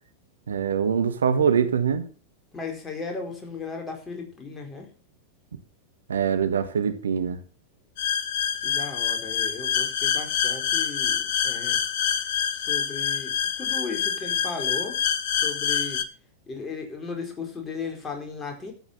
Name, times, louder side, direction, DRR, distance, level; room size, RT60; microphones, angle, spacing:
voice 1, 0.5-2.0 6.1-7.4, right 7 dB, 70° right, 1.3 m, -23 dB
voice 2, 2.5-4.9 8.6-11.8 12.5-15.0 15.3-16.0 16.5-18.7, left 4 dB, 20° left, 4.5 m, -36 dB
sound 1, 8.0-16.0, left 9 dB, 50° left, 1.2 m, -26 dB
13.5 x 8.7 x 5.8 m
figure-of-eight pair, 90°, 0 cm